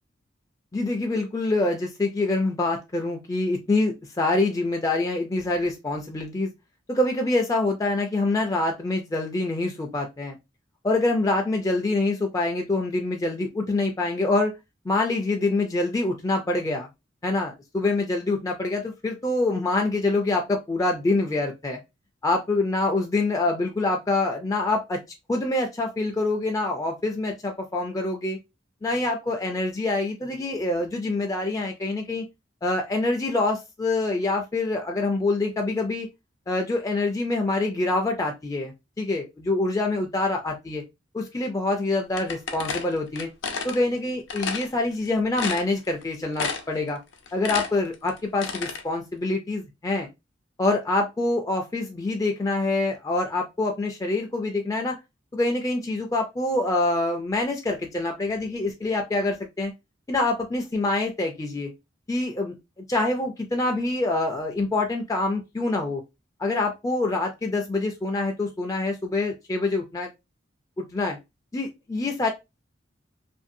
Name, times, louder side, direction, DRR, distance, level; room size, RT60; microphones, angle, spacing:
voice 1, 0.7-6.5 6.9-10.4 10.8-14.5 14.8-16.9 17.2-21.8 22.2-25.0 25.3-28.4 28.8-32.3 32.6-36.1 36.5-40.8 41.1-43.3 43.6-47.0 47.3-50.1 50.6-55.0 55.3-59.7 60.1-61.7 62.1-62.6 62.9-66.0 66.4-70.1 70.8-71.2 71.5-72.3, left 2 dB, 20° left, 2 dB, 0.3 m, -25 dB
sound 1, 42.2-43.8 44.3-44.7 45.1-45.2 45.4-46.0 46.4-46.8 47.1-48.8, left 5 dB, 65° left, 0.6 m, -30 dB
2.6 x 2.5 x 2.5 m, 0.23 s
head